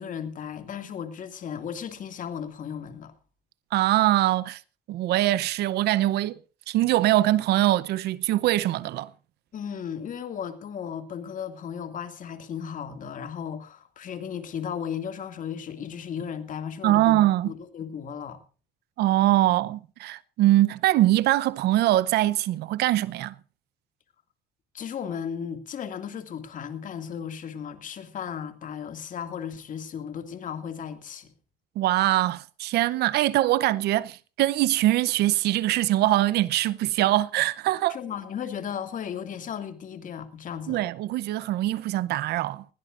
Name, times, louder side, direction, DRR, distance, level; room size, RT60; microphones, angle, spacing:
voice 1, 0.0-3.1 9.5-18.4 24.7-31.3 37.9-40.8, left 8 dB, 50° left, 2.2 m, -35 dB
voice 2, 3.7-4.6 4.9-6.4 6.7-9.1 16.8-17.5 19.0-23.3 31.8-38.0 40.7-42.6, right 15 dB, 75° right, 0.7 m, -23 dB
20.5 x 16.5 x 2.5 m
cardioid pair, 110°, 17 cm